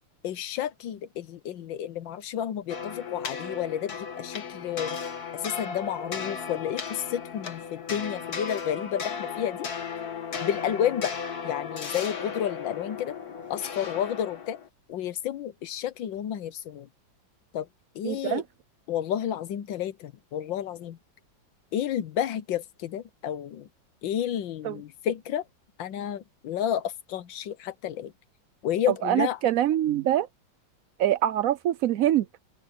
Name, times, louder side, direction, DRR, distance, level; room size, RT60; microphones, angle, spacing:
voice 1, 0.2-5.0 5.3-9.7 10.4-11.1 11.4-13.1 13.5-14.6 14.9-16.9 17.5-17.7 17.9-18.4 18.9-21.0 21.7-23.7 24.0-25.4 25.8-28.1 28.6-29.4, left 10 dB, 75° left, 1.5 m, -31 dB
sound 1, 2.7-14.7, left 6 dB, 50° left, 2.1 m, -35 dB
voice 2, 18.0-18.4 24.6-24.8 29.0-30.3 31.0-32.3, right 12 dB, 90° right, 0.7 m, -24 dB
open air
omnidirectional pair, 2.1 m